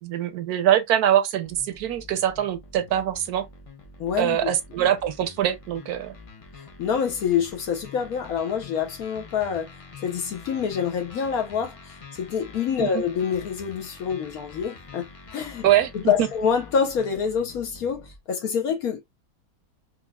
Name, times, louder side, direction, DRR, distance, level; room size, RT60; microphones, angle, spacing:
voice 1, 0.0-3.5 4.2-6.2 12.9-13.0 15.6-16.3, right 11 dB, 80° right, 1.2 m, -23 dB
sound 1, 1.4-18.2, left 4 dB, 50° left, 0.4 m, -46 dB
voice 2, 4.0-4.5 6.6-9.7 10.0-15.7 15.9-19.0, left 7 dB, 75° left, 1.2 m, -26 dB
4.4 x 2.4 x 2.2 m
omnidirectional pair, 1.6 m